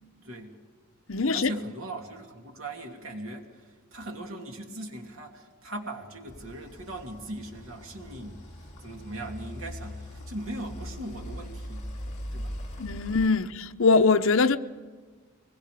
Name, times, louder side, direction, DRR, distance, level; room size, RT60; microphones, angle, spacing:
voice 1, 0.2-0.6 1.3-11.8 12.3-12.5, right 1 dB, 80° right, 3.0 m, -39 dB
voice 2, 1.1-1.5 12.8-14.6, left 4 dB, 70° left, 0.9 m, -22 dB
sound 1, 6.3-13.3, equal, 35° left, 2.6 m, -40 dB
24.5 x 21.0 x 5.1 m
head